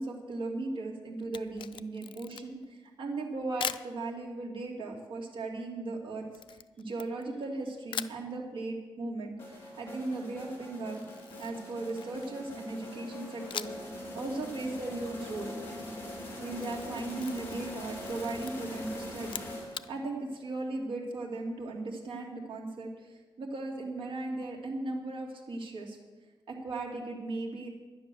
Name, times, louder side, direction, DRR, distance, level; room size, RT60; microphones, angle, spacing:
voice 1, 0.0-6.2 6.5-11.0 11.4-15.6 16.4-26.0 26.5-27.7, right 2 dB, 75° right, -1 dB, 2.5 m, -37 dB
Camera, 1.2-2.7 3.6-3.9 6.3-7.5 7.9-8.2 10.9-12.4 13.5-13.9 14.3-14.4 16.3-17.7 18.0-18.5 19.2-19.9, left 9 dB, 70° left, 0.4 m, -40 dB
sound 1, 9.4-20.1, left 1 dB, 25° left, 3.2 m, -42 dB
10.5 x 10.0 x 6.9 m, 1.2 s
wide cardioid pair, 145°, 9 cm